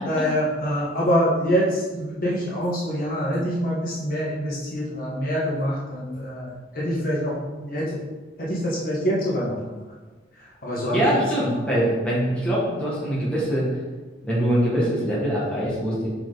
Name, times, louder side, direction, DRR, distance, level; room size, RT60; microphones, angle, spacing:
voice 1, 0.0-7.9 8.4-9.5 10.6-11.0, equal, 50° left, -6 dB, 1.6 m, -25 dB
voice 2, 10.9-13.7 14.2-16.1, equal, 5° left, -8 dB, 1.9 m, -23 dB
5.9 x 4.7 x 4.1 m, 1.3 s
head